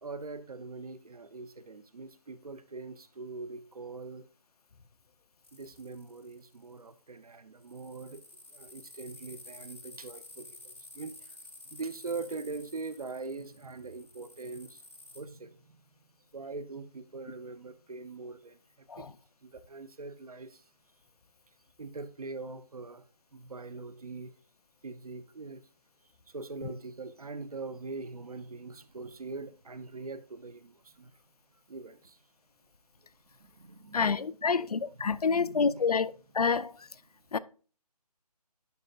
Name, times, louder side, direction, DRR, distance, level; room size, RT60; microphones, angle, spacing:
voice 1, 0.0-4.3 5.5-8.2 8.5-11.4 11.6-14.8 15.1-15.8 16.3-19.1 19.4-20.6 21.8-23.0 23.3-24.3 24.8-25.6 26.3-31.2 31.7-32.2 33.4-35.9, right 3 dB, 65° right, 0.9 m, -42 dB
sound 1, 5.4-6.6 7.6-15.2, left 2 dB, 20° left, 0.7 m, -52 dB
voice 2, 33.9-36.7 37.3-37.4, left 5 dB, 65° left, 0.5 m, -28 dB
11.0 x 5.4 x 2.5 m
figure-of-eight pair, 175°, 21 cm